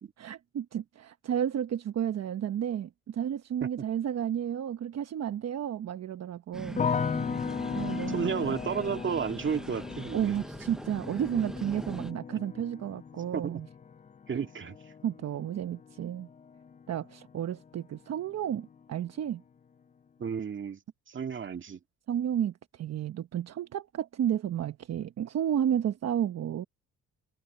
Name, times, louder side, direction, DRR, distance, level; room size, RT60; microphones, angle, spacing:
voice 1, 0.2-6.9 7.7-8.4 10.1-13.7 14.3-14.5 15.0-16.3 16.9-19.4 22.1-26.6, right 10 dB, 60° right, 1.1 m, -32 dB
sound 1, 6.5-12.1, equal, ahead, 0.7 m, -41 dB
sound 2, 6.8-17.8 18.1-18.8, left 6 dB, 25° left, 0.5 m, -37 dB
voice 2, 7.9-10.3 13.3-13.6 14.3-14.8 20.2-20.8 21.1-21.8, right 6 dB, 40° right, 2.0 m, -32 dB
cardioid pair, 90°, 30 cm